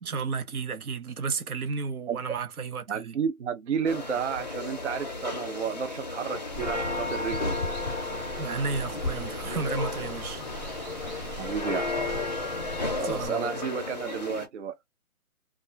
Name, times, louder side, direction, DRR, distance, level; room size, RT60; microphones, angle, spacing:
voice 1, 0.0-3.2 8.4-10.4 13.0-13.7, right 5 dB, 85° right, 0.8 m, -33 dB
voice 2, 2.9-7.5 11.4-12.3 13.0-14.8, right 7 dB, 55° right, 0.5 m, -32 dB
sound 1, 3.9-14.5, left 3 dB, 30° left, 0.5 m, -33 dB
Water, 6.5-13.3, left 1 dB, 10° right, 1.0 m, -38 dB
2.3 x 2.1 x 2.6 m
hypercardioid pair, 160°, 43 cm